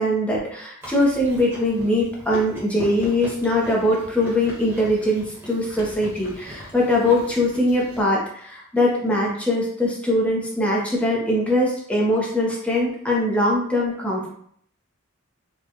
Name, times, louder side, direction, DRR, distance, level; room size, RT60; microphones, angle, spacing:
voice 1, 0.0-14.3, left 1 dB, 5° left, -4 dB, 0.9 m, -22 dB
Chewing mastication, 0.8-8.0, equal, 10° right, 1.3 m, -39 dB
4.5 x 2.4 x 2.9 m, 0.64 s
head